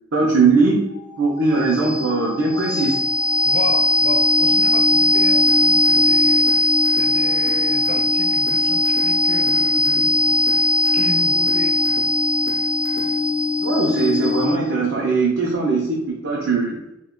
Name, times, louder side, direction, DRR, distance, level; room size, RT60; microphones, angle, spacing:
voice 1, 0.1-0.9 1.2-3.0 13.6-16.8, right 3 dB, 75° right, -3 dB, 0.5 m, -20 dB
sound 1, 0.9-14.8, left 2 dB, 25° right, 0.5 m, -19 dB
voice 2, 3.4-12.1, left 3 dB, 35° left, 5 dB, 0.3 m, -33 dB
sound 2, 5.5-13.5, left 2 dB, 90° left, 0.6 m, -40 dB
2.3 x 2.2 x 3.5 m, 0.89 s
head